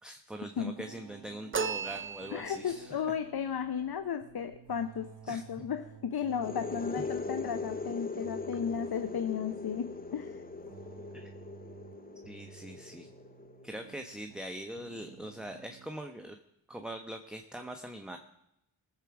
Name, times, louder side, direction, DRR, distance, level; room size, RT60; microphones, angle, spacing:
voice 1, 0.0-3.0 5.3-5.4 11.1-11.3 12.2-13.1 13.6-16.4 16.7-18.2, right 1 dB, ahead, 5 dB, 1.0 m, -42 dB
sound 1, 0.8-14.5 14.8-16.0, right 8 dB, 55° right, 0.8 m, -53 dB
sound 2, 1.5-2.8, right 6 dB, 25° right, 0.6 m, -35 dB
voice 2, 2.3-10.4, left 7 dB, 50° left, 10 dB, 0.8 m, -34 dB
sound 3, 6.3-13.8, left 4 dB, 20° left, 0.6 m, -40 dB
18.5 x 7.5 x 4.9 m, 0.84 s
cardioid pair, 45°, 48 cm